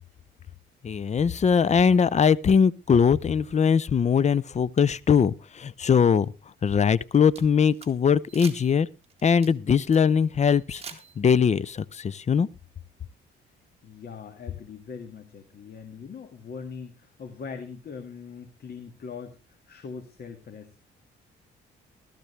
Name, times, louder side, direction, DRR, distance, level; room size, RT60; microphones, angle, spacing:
voice 1, 0.8-6.3 6.6-8.9 9.2-10.8 11.2-12.5, left 6 dB, 35° left, 0.6 m, -21 dB
sound 1, 7.0-7.9 8.3-8.7 9.0-10.0 10.4-11.4, right 5 dB, 30° right, 2.0 m, -44 dB
voice 2, 13.8-20.8, left 5 dB, 50° left, 2.0 m, -41 dB
15.0 x 13.5 x 3.3 m
cardioid pair, 90°, 20 cm